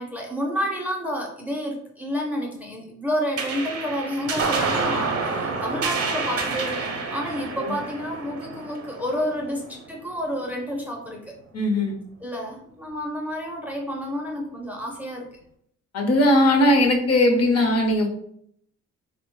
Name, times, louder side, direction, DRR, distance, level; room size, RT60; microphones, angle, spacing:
voice 1, 0.0-11.3 12.2-15.3, equal, 5° right, 0 dB, 0.5 m, -30 dB
sound 1, 3.4-10.1, right 4 dB, 50° right, 0.6 m, -28 dB
voice 2, 11.5-12.0 15.9-18.1, left 1 dB, 55° left, 2 dB, 0.8 m, -19 dB
3.0 x 2.1 x 3.0 m, 0.69 s
cardioid pair, 90°, 30 cm